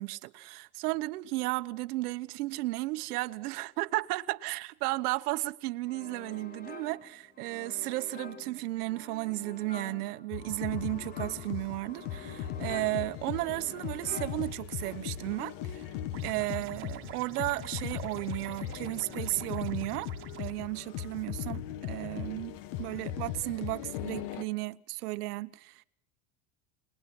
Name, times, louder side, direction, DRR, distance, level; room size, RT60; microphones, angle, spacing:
voice 1, 0.0-15.9 16.2-20.1 20.4-25.8, right 20 dB, 90° right, 1.2 m, -34 dB
sound 1, 5.9-15.4, left 3 dB, 20° left, 2.0 m, -48 dB
sound 2, 10.3-24.4, left 10 dB, 60° left, 1.4 m, -39 dB
sound 3, 16.1-20.5, right 11 dB, 30° right, 1.4 m, -48 dB
30.0 x 20.5 x 6.1 m
cardioid pair, 180°, 44 cm